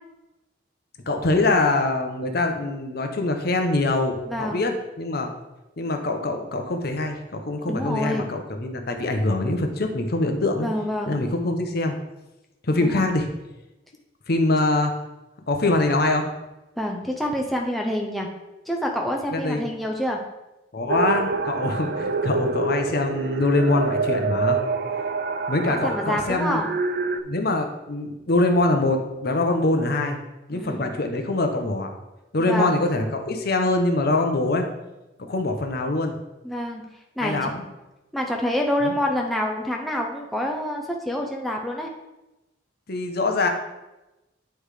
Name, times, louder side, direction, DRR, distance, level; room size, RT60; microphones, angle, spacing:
voice 1, 1.1-4.7 5.0-5.3 5.8-10.7 11.1-11.9 12.6-13.3 14.3-14.9 15.5-16.2 19.3-19.7 20.7-24.6 25.5-26.6 27.2-30.2 30.5-31.9 32.3-34.7 35.2-36.1 37.2-37.7 38.8-38.9 42.9-43.5, left 2 dB, 55° left, 4 dB, 0.8 m, -23 dB
voice 2, 4.3-4.7 7.7-8.3 10.6-11.2 12.8-13.1 16.8-18.3 18.7-20.2 25.5-26.7 30.5-30.9 32.4-32.8 36.4-36.8 37.2-37.5 38.1-41.9, left 1 dB, ahead, -1 dB, 0.6 m, -27 dB
sound 1, 20.9-27.2, right 4 dB, 50° right, 0.4 m, -26 dB
9.6 x 3.3 x 4.9 m, 1.0 s
head